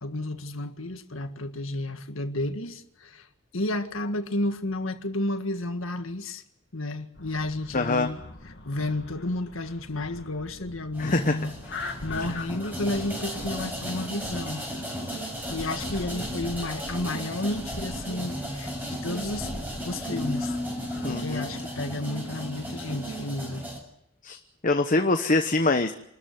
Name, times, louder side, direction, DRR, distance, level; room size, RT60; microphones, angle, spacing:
voice 1, 0.0-3.3 3.5-6.4 6.7-8.2 8.7-11.5 12.0-14.6 15.5-19.5 19.9-20.6 21.0-23.7, left 2 dB, 80° left, 1.8 m, -32 dB
sound 1, 7.2-21.4, left 2 dB, 60° left, 2.7 m, -43 dB
voice 2, 7.7-8.1 11.0-11.4 21.0-21.5 24.2-24.4 24.6-25.9, left 2 dB, 40° left, 1.0 m, -24 dB
sound 2, 10.9-23.8, equal, 10° right, 6.8 m, -35 dB
27.5 x 13.5 x 9.5 m
head